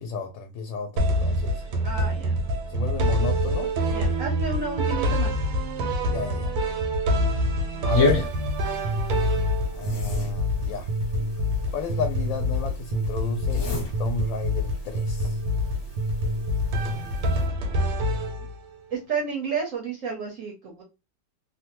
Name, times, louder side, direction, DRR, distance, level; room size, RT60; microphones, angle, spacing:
voice 1, 0.0-1.6 2.7-3.7 6.0-6.5 7.8-8.3 9.7-10.9 11.7-15.4 16.8-17.6, left 5 dB, 80° left, 1.3 m, -33 dB
sound 1, 1.0-18.8, equal, 90° right, 1.4 m, -26 dB
voice 2, 1.8-2.4 3.9-5.3 18.9-20.8, right 5 dB, 65° right, 0.8 m, -31 dB
sound 2, 7.9-17.5, left 3 dB, 45° left, 1.3 m, -32 dB
3.2 x 2.1 x 2.9 m
omnidirectional pair, 2.0 m